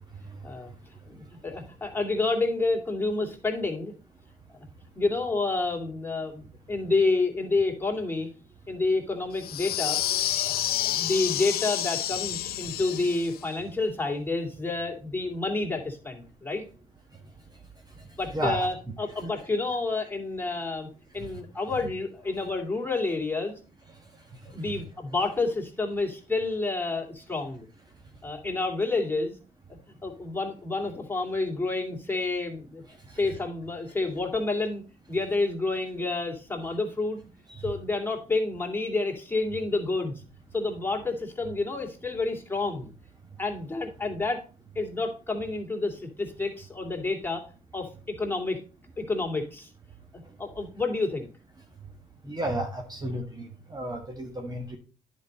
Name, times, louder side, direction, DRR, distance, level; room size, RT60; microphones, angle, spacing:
voice 1, 1.1-3.9 4.5-4.7 4.9-8.3 8.7-10.0 10.5-10.6 10.8-16.6 18.2-20.9 21.1-23.5 24.5-27.7 28.2-29.4 30.0-32.8 33.1-34.8 35.1-37.2 37.6-40.2 40.5-42.9 43.4-44.4 44.7-47.4 47.7-47.9 48.2-48.6 49.0-49.7 50.4-51.3, left 3 dB, 10° left, -1 dB, 2.8 m, -29 dB
sound 1, 9.4-13.4, left 12 dB, 65° left, 0.5 m, -29 dB
voice 2, 18.3-18.7 21.2-21.3 24.7-24.8 33.1-33.4 37.5-37.7 52.2-54.8, right 1 dB, 25° right, 2 dB, 1.5 m, -33 dB
10.0 x 5.4 x 4.1 m, 0.36 s
supercardioid pair, 55°, 17 cm